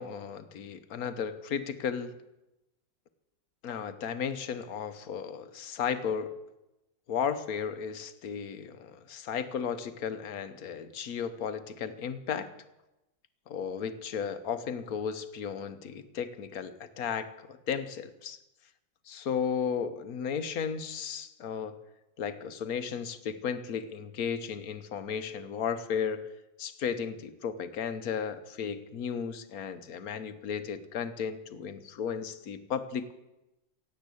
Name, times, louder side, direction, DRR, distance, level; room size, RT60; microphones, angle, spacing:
voice 1, 0.0-2.2 3.6-6.3 7.1-12.5 13.5-18.4 19.1-21.8 22.2-26.2 26.6-33.1, left 7 dB, 70° left, 11 dB, 1.4 m, -34 dB
17.0 x 8.4 x 8.4 m, 0.97 s
omnidirectional pair, 1.6 m